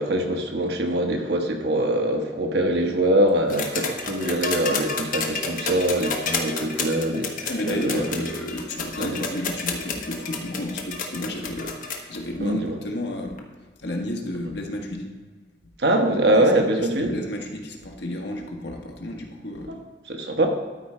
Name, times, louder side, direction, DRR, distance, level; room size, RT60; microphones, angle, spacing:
voice 1, 0.0-8.3 9.0-9.2 12.4-12.8 15.8-17.1 19.7-19.8 20.1-20.5, right 1 dB, 65° right, 3 dB, 1.1 m, -23 dB
sound 1, 3.5-12.2 13.4-13.5, left 4 dB, 50° left, 1.0 m, -30 dB
voice 2, 7.5-11.7 12.1-13.4 13.8-15.1 16.3-16.4 16.8-19.8, left 1 dB, 70° left, 1 dB, 1.3 m, -32 dB
12.5 x 4.8 x 4.3 m, 1.4 s
head